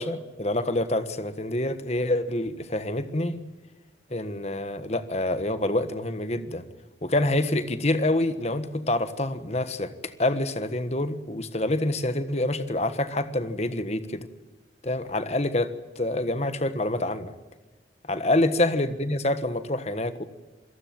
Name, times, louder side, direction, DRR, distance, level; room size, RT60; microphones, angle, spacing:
voice 1, 0.0-3.4 4.1-6.6 7.0-14.3 14.8-17.3 18.1-20.2, left 1 dB, 35° left, 11 dB, 1.5 m, -27 dB
27.0 x 18.0 x 7.7 m, 1.3 s
head